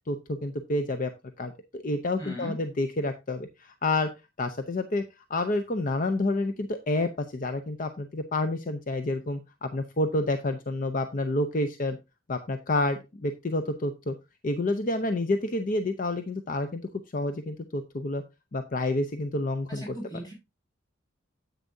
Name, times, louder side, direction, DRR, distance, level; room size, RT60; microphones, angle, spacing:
voice 1, 0.1-1.1 1.4-4.1 4.4-5.0 5.3-12.0 12.3-14.2 14.4-16.8 17.1-18.2 18.5-19.9, left 2 dB, 45° left, 8 dB, 0.6 m, -29 dB
voice 2, 2.2-2.5 19.7-20.3, right 1 dB, 20° left, -2 dB, 5.5 m, -38 dB
9.9 x 8.2 x 2.7 m, 0.24 s
head